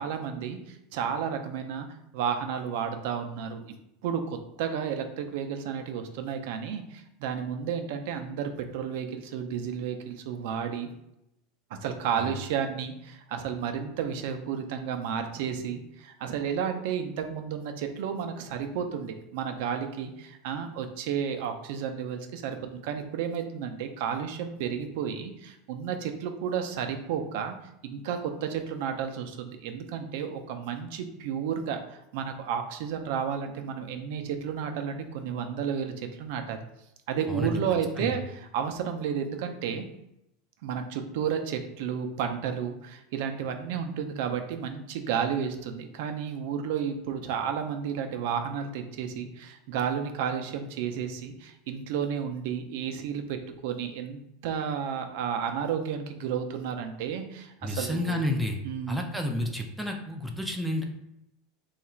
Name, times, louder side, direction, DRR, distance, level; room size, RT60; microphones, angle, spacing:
voice 1, 0.0-1.9 2.1-3.6 4.0-10.9 11.7-27.5 27.8-36.7 37.1-39.9 40.6-58.2 58.6-59.1, right 7 dB, 65° right, 6 dB, 0.4 m, -32 dB
voice 2, 57.6-58.6 58.9-60.8, left 1 dB, ahead, 1 dB, 0.3 m, -30 dB
2.9 x 2.4 x 4.2 m, 0.84 s
supercardioid pair, 160°, 0 cm